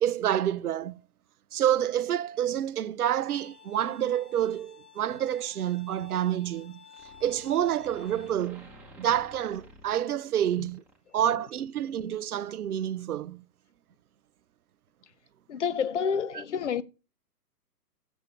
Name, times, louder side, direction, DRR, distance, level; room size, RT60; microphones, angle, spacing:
voice 1, 0.0-1.0 1.5-6.8 7.2-8.7 9.0-10.8 11.1-13.4, right 10 dB, 65° right, 0.5 m, -28 dB
Bowed string instrument, 3.3-8.3, left 7 dB, 65° left, 1.6 m, -53 dB
sound 1, 6.9-11.4, equal, 5° right, 1.0 m, -53 dB
voice 2, 15.5-16.8, left 7 dB, 45° left, 0.6 m, -29 dB
7.1 x 7.0 x 7.0 m
figure-of-eight pair, 125°, 49 cm